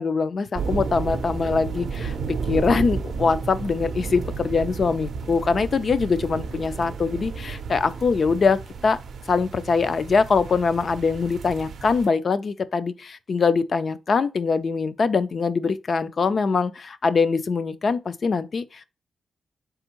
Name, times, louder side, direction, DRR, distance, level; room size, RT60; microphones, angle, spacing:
voice 1, 0.0-2.2 2.5-9.0 9.3-18.9, left 4 dB, 45° left, 0.4 m, -23 dB
sound 1, 0.5-12.1, right 5 dB, 65° right, 0.5 m, -32 dB
4.2 x 3.5 x 2.9 m
wide cardioid pair, 155°, 0 cm